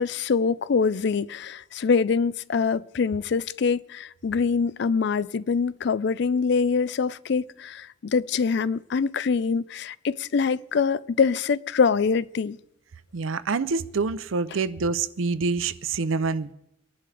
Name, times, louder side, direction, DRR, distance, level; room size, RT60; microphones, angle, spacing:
voice 1, 0.0-12.6, left 5 dB, 60° left, 0.4 m, -24 dB
voice 2, 13.1-16.5, right 4 dB, 85° right, 0.6 m, -26 dB
24.5 x 11.0 x 3.4 m
head